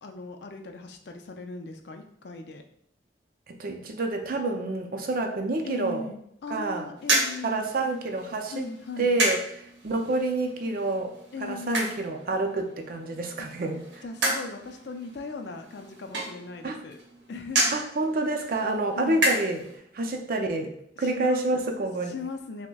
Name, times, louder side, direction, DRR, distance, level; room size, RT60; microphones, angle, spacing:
voice 1, 0.0-2.6 5.6-7.7 8.5-9.1 11.3-12.0 13.4-13.5 14.0-17.0 17.3-17.8 18.9-19.4 21.0-21.5 22.0-22.7, left 3 dB, 65° left, 5 dB, 0.4 m, -39 dB
voice 2, 3.5-6.0 6.5-6.9 7.4-8.7 9.0-9.4 9.8-11.1 11.4-14.0 16.6-16.8 17.7-19.6 19.9-20.7 21.0-22.1, right 2 dB, 50° right, 3 dB, 0.5 m, -28 dB
sound 1, 7.0-19.8, right 2 dB, 85° right, 0.8 m, -32 dB
5.9 x 2.1 x 2.3 m, 0.71 s
head